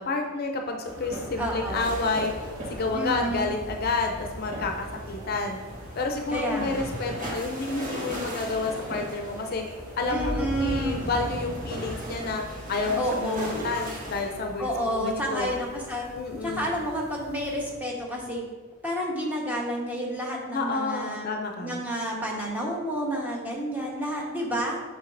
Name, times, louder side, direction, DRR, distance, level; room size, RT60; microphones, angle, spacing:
voice 1, 0.0-2.3 2.7-5.6 6.0-9.6 10.0-12.4 12.7-13.3 13.6-15.6 16.1-16.8 20.5-21.8, left 3 dB, 45° left, 3 dB, 0.5 m, -30 dB
sound 1, 0.8-17.8, right 1 dB, 80° right, 1.9 m, -42 dB
voice 2, 1.4-1.8 2.9-3.5 6.3-6.8 10.1-11.0 13.0-13.5 14.6-16.1 16.4-18.4 18.8-21.3 21.6-24.8, equal, 10° right, -3 dB, 1.1 m, -30 dB
sound 2, 1.7-14.3, equal, 40° right, 1.7 m, -37 dB
7.1 x 5.9 x 2.6 m, 1.4 s
head